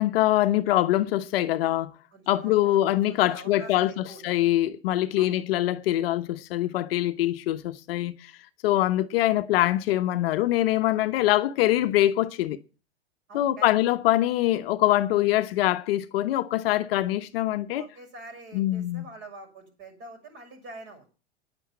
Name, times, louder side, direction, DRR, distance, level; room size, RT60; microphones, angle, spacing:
voice 1, 0.0-1.9 2.3-8.3 8.6-12.6 13.3-17.9 18.5-19.0, left 14 dB, 55° left, 1.0 m, -24 dB
voice 2, 2.1-4.2 5.2-5.4 13.3-13.7 15.1-15.3 17.7-21.1, right 2 dB, 35° right, 6.3 m, -45 dB
10.0 x 9.4 x 7.2 m
hypercardioid pair, 125°, 35 cm